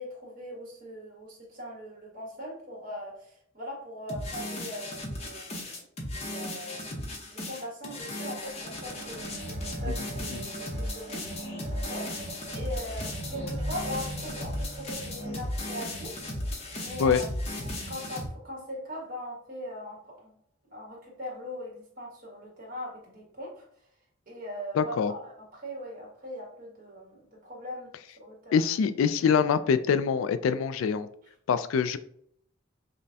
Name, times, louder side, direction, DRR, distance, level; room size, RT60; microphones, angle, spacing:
voice 1, 0.0-5.9 6.1-6.9 7.3-16.1 16.7-17.3 17.9-20.4 20.7-23.6 24.3-28.6, equal, 45° right, -3 dB, 1.5 m, -40 dB
sound 1, 4.1-18.3, left 1 dB, 30° left, 0.7 m, -36 dB
sound 2, 8.2-17.7 18.5-18.6, right 1 dB, 30° right, 0.6 m, -43 dB
voice 2, 24.8-25.1 28.5-31.1 31.5-32.0, left 6 dB, 80° left, 12 dB, 0.3 m, -24 dB
5.2 x 2.2 x 2.7 m, 0.65 s
head